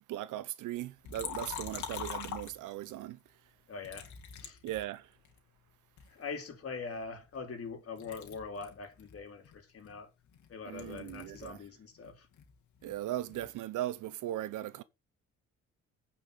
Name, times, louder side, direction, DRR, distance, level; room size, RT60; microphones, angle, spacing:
voice 1, 0.1-3.2 4.6-5.0 10.7-11.6 12.8-14.8, right 13 dB, 85° right, 1.0 m, -38 dB
Liquid, 1.0-3.0 3.8-5.4 6.0-7.7 8.0-11.7 11.9-13.6, left 8 dB, 70° left, 2.7 m, -45 dB
voice 2, 3.7-4.1 4.4-4.6 6.1-10.1 10.5-12.3, left 5 dB, 50° left, 3.7 m, -43 dB
9.2 x 5.8 x 7.4 m
cardioid pair, 90°, 30 cm